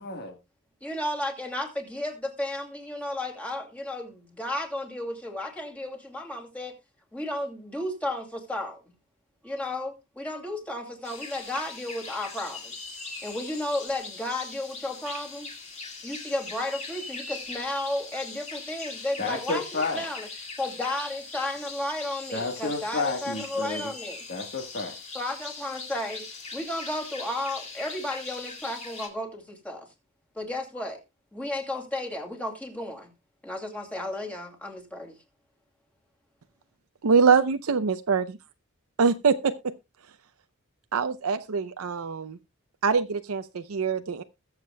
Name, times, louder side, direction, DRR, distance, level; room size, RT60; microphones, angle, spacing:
voice 1, 0.0-0.4 19.2-20.0 22.3-23.9 24.3-25.0, left 3 dB, 50° left, 1.4 m, -31 dB
voice 2, 0.8-6.7 7.1-8.9 9.4-12.7 13.2-15.5 16.0-20.3 20.6-24.2 25.1-29.9 30.3-31.0 31.3-33.1 33.4-35.2, left 1 dB, 5° left, 2.5 m, -33 dB
sound 1, 11.0-29.1, left 4 dB, 30° left, 2.2 m, -41 dB
voice 3, 37.0-38.2 39.0-39.5 40.9-42.4 42.8-44.2, right 5 dB, 80° right, 0.6 m, -23 dB
21.0 x 7.3 x 2.2 m
head